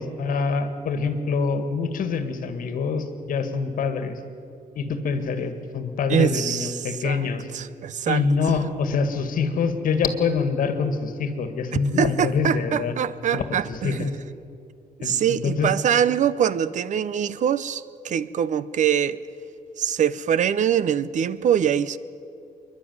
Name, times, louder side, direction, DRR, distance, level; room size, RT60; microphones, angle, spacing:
voice 1, 0.0-4.2 4.8-7.5 8.1-13.0 13.3-14.1 15.0-15.7, left 5 dB, 65° left, 1.8 m, -25 dB
voice 2, 6.1-7.3 7.5-8.2 12.0-14.1 15.0-19.2 19.8-22.0, right 9 dB, 55° right, 0.6 m, -23 dB
26.5 x 11.5 x 9.5 m
cardioid pair, 155°, 15 cm